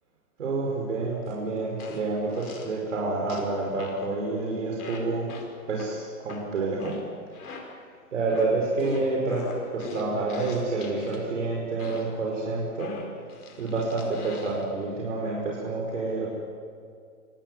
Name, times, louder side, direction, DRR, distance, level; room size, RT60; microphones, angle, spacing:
voice 1, 0.4-5.3 5.7-7.0 8.1-13.0 13.6-16.3, right 3 dB, 55° right, -2 dB, 5.4 m, -28 dB
sound 1, 1.3-1.4 1.8-2.8 3.3-4.1 4.8-7.9 8.3-11.2 11.8-12.3 12.8-14.7, left 4 dB, 75° left, 5.2 m, -42 dB
27.0 x 18.5 x 8.2 m, 2.2 s
hypercardioid pair, 175°, 45 cm